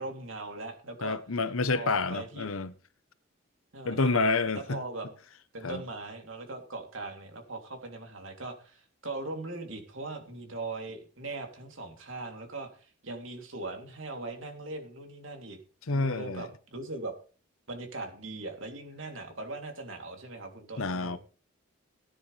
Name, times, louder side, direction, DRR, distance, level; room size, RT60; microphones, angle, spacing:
voice 1, 0.0-1.2 1.7-2.5 3.7-4.2 4.5-5.1 5.5-15.6 15.9-17.2 17.7-21.2, right 2 dB, 65° right, 3.1 m, -40 dB
voice 2, 1.0-2.7 3.8-4.8 5.6-5.8 15.9-16.5 20.8-21.2, left 3 dB, 80° left, 1.0 m, -28 dB
17.5 x 10.0 x 3.4 m
head